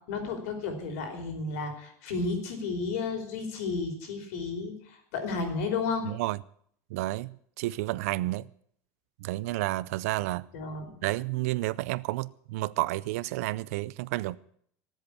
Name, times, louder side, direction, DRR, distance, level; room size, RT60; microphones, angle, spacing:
voice 1, 0.1-6.1 10.5-10.9, left 4 dB, 70° left, 4.8 m, -32 dB
voice 2, 6.0-6.4 6.9-8.5 9.2-10.5 11.0-14.4, right 18 dB, 70° right, 0.6 m, -31 dB
18.0 x 8.1 x 8.5 m
cardioid pair, 175°, 8 cm